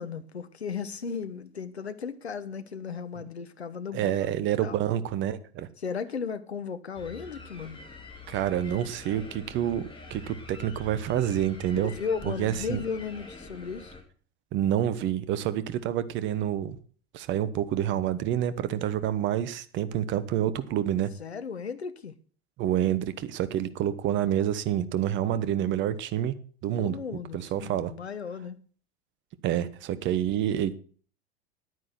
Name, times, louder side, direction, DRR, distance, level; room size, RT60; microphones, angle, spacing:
voice 1, 0.0-4.3 4.6-4.8 5.8-7.8 11.8-14.0 21.2-22.1 26.8-28.6, left 6 dB, 80° left, 1.1 m, -35 dB
voice 2, 3.9-5.7 8.3-11.9 12.2-12.8 14.5-16.8 17.1-21.1 22.6-26.3 26.6-26.9 27.3-27.9 29.4-30.7, right 11 dB, 35° right, 1.1 m, -28 dB
sound 1, 6.9-14.0, left 2 dB, 15° left, 3.5 m, -45 dB
10.0 x 9.5 x 5.9 m
figure-of-eight pair, 80°, 32 cm